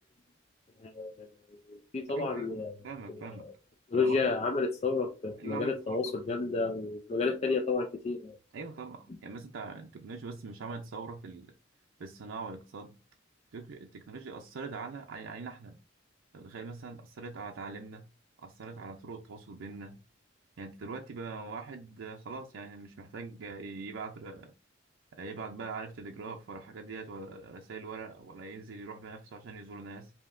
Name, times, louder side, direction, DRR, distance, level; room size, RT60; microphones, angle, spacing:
voice 1, 0.8-2.7 3.1-3.5 3.9-8.4, left 4 dB, 35° left, 0.4 m, -31 dB
voice 2, 2.2-3.5 3.9-4.2 5.4-6.1 8.5-11.5 12.0-13.0 13.5-15.8 16.3-18.1 18.4-20.0 20.6-24.5 25.1-30.1, right 4 dB, 90° right, 0.5 m, -42 dB
5.1 x 2.7 x 2.5 m
head